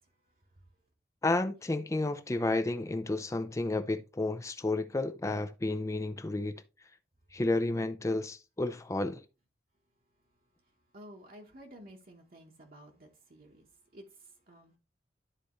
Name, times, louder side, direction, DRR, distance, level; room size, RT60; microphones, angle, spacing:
voice 1, 1.2-6.6 7.3-9.2, left 2 dB, 20° left, 0.4 m, -31 dB
voice 2, 10.9-13.6 13.9-14.0 14.5-14.7, equal, 55° right, 1.2 m, -52 dB
12.0 x 4.2 x 3.1 m
head